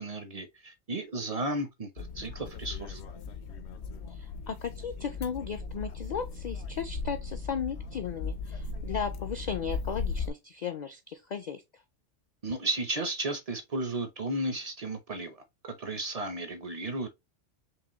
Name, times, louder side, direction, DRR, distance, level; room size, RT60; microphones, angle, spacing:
voice 1, 0.0-3.0 12.4-17.1, right 2 dB, 45° right, 0.5 m, -34 dB
sound 1, 2.0-10.3, left 4 dB, 75° left, 0.9 m, -37 dB
voice 2, 4.1-11.6, left 7 dB, 55° left, 0.5 m, -36 dB
4.8 x 2.9 x 2.9 m
omnidirectional pair, 1.2 m